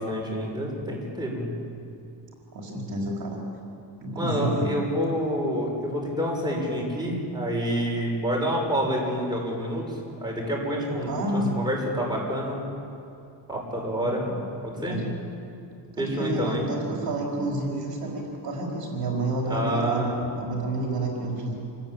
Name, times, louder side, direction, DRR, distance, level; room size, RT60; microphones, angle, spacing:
voice 1, 0.0-1.5 4.1-9.8 10.2-12.6 13.5-14.2 14.6-15.0 16.0-16.7 19.5-20.2, equal, 10° right, -2 dB, 6.8 m, -28 dB
voice 2, 2.5-3.4 4.0-4.7 11.1-11.5 14.0-14.4 14.7-15.2 15.9-21.5, right 1 dB, 55° right, -1 dB, 4.6 m, -30 dB
27.5 x 20.0 x 9.0 m, 2.6 s
cardioid pair, 135°, 43 cm